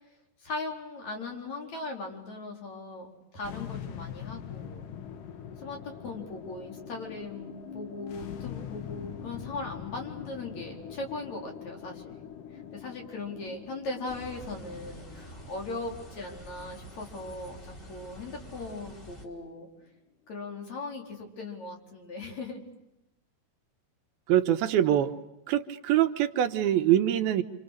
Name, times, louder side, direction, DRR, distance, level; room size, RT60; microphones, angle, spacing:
voice 1, 0.4-4.9 5.6-19.7 20.3-22.6, left 3 dB, 50° left, 1 dB, 5.3 m, -39 dB
sound 1, 3.4-19.8, left 9 dB, 65° left, 2.8 m, -44 dB
sound 2, 14.1-19.3, right 1 dB, 20° left, 4.3 m, -47 dB
voice 2, 24.3-25.1 25.5-27.4, right 11 dB, 80° right, 7 dB, 2.9 m, -24 dB
28.5 x 28.0 x 6.6 m, 0.92 s
omnidirectional pair, 4.4 m